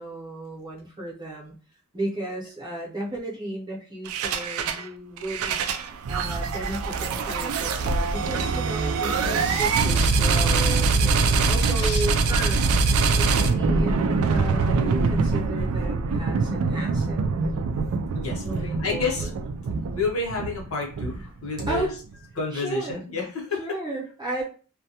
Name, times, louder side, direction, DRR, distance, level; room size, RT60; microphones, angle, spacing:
voice 1, 0.0-1.5 1.9-5.6 6.1-12.8 13.2-17.2 18.4-19.3 21.7-21.9 22.5-23.0 23.6-24.4, right 1 dB, 20° right, -4 dB, 0.7 m, -34 dB
sound 1, 4.1-4.8 5.2-22.1, right 4 dB, 80° right, 0.3 m, -24 dB
sound 2, 7.2-7.5 7.8-8.0 9.4-10.2 11.7-12.0, left 4 dB, 50° left, 0.5 m, -38 dB
voice 2, 18.1-19.3 19.9-21.9 22.4-23.6, left 4 dB, 75° left, -1 dB, 0.9 m, -29 dB
2.2 x 2.2 x 2.8 m, 0.38 s
head